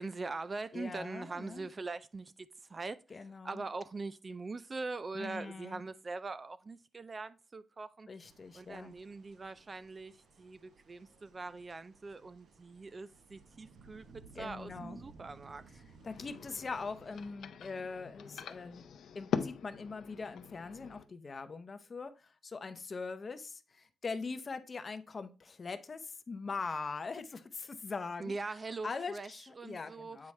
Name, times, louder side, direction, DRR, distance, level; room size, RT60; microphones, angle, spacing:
voice 1, 0.0-3.0 3.4-8.1 8.5-15.8 28.2-30.3, right 3 dB, 25° right, 0.3 m, -42 dB
voice 2, 0.7-1.7 3.1-3.6 5.1-5.8 8.1-8.9 14.4-15.0 16.0-18.8 19.1-28.3 28.8-30.3, left 4 dB, 35° left, 0.6 m, -42 dB
sound 1, 8.2-17.3, right 4 dB, 75° right, 1.1 m, -58 dB
sound 2, 16.0-21.0, left 7 dB, 80° left, 0.6 m, -42 dB
8.4 x 4.7 x 3.2 m
wide cardioid pair, 150°, 0 cm